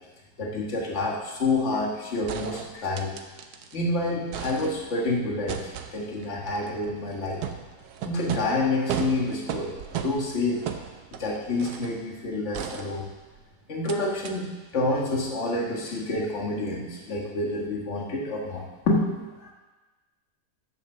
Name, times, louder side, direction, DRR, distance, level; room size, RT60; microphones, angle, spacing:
voice 1, 0.4-3.1 3.7-7.4 8.0-10.6 11.2-13.1 13.7-19.1 19.4-19.5, left 2 dB, 45° left, -1 dB, 1.8 m, -28 dB
sound 1, 1.8-1.9 2.3-3.8 4.1-5.1 5.5-12.0 12.5-13.4 13.9-14.0 14.2-14.3, right 8 dB, 70° right, 1.2 m, -36 dB
10.5 x 5.6 x 6.6 m, 1.2 s
omnidirectional pair, 1.8 m